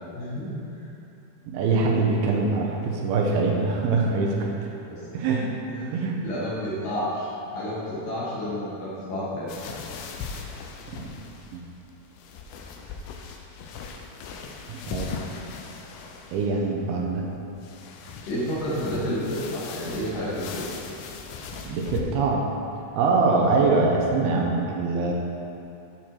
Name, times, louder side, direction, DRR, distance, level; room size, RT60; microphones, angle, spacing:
voice 1, 0.1-0.6 4.3-4.4 4.9-5.0 5.7-5.9 6.2-9.5 18.2-20.7 23.3-23.6, equal, 65° left, -9 dB, 2.9 m, -30 dB
voice 2, 1.5-4.7 5.1-5.6 5.9-6.2 11.0-11.1 11.5-11.6 14.7-15.1 16.3-17.2 21.6-22.5 23.0-25.1, right 3 dB, 85° right, -1 dB, 2.6 m, -23 dB
sound 1, 9.5-22.0, left 5 dB, 85° left, 2.6 m, -39 dB
8.9 x 4.5 x 4.4 m, 2.8 s
omnidirectional pair, 4.5 m